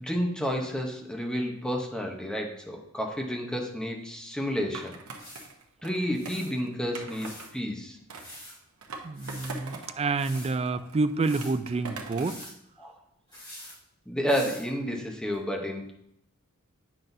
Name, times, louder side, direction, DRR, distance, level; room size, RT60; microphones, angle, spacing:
voice 1, 0.0-4.9 5.8-8.0 9.8-10.0 12.8-12.9 14.1-15.9, equal, 5° left, 1 dB, 0.9 m, -31 dB
sound 1, 4.4-4.5 5.2-5.5 6.1-6.5 7.1-7.5 8.1-8.6 9.1-9.5 10.2-10.5 11.2-11.5 12.2-12.5 13.3-13.8 14.3-14.7 15.3-15.4, left 1 dB, 20° left, 2.8 m, -45 dB
Skateboard, 4.7-7.5 8.1-9.9 10.2-12.4, right 3 dB, 85° right, 0.9 m, -43 dB
voice 2, 9.0-12.5, right 3 dB, 30° right, 11 dB, 0.4 m, -28 dB
8.7 x 5.9 x 2.7 m, 0.75 s
head